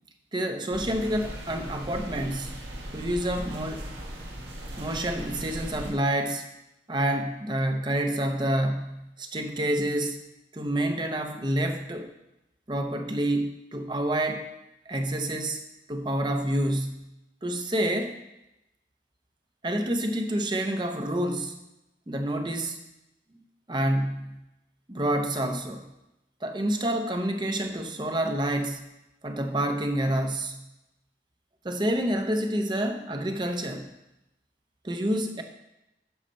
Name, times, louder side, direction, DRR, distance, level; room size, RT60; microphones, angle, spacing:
voice 1, 0.3-2.6 2.9-3.9 4.8-6.5 6.9-10.2 10.5-12.1 12.7-14.4 14.9-15.6 15.9-17.1 17.4-18.2 19.6-21.6 22.1-22.8 23.7-24.4 24.9-25.9 26.4-28.9 29.2-30.6 31.6-33.9 34.8-35.4, right 1 dB, 25° right, 5 dB, 0.7 m, -28 dB
sound 1, 0.7-5.9, right 1 dB, 75° right, 1.6 m, -38 dB
10.0 x 6.5 x 4.3 m, 0.94 s
head